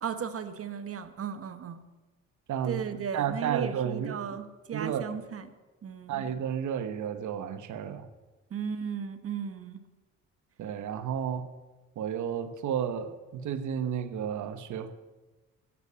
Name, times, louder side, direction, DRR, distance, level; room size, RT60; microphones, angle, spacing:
voice 1, 0.0-1.8 2.6-5.5 5.8-6.3 8.5-9.8, right 7 dB, 50° right, 11 dB, 1.2 m, -36 dB
voice 2, 2.5-4.4 4.7-5.2 6.1-8.1 10.6-11.5 12.0-14.9, right 8 dB, 75° right, 11 dB, 1.2 m, -32 dB
14.5 x 8.4 x 8.6 m, 1.2 s
cardioid pair, 90°, 30 cm